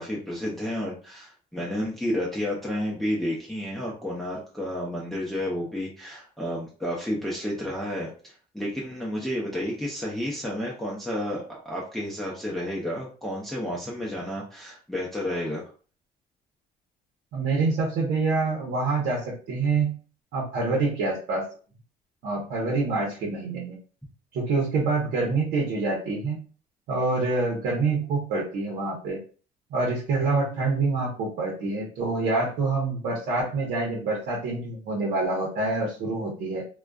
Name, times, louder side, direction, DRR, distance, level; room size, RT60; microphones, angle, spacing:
voice 1, 0.0-15.6, left 1 dB, ahead, -4 dB, 0.6 m, -31 dB
voice 2, 17.3-20.0 20.3-21.4 22.2-23.8 24.3-26.4 26.9-29.2 29.7-36.6, right 3 dB, 80° right, -3 dB, 0.8 m, -26 dB
2.4 x 2.3 x 2.2 m, 0.39 s
cardioid pair, 110°, 17 cm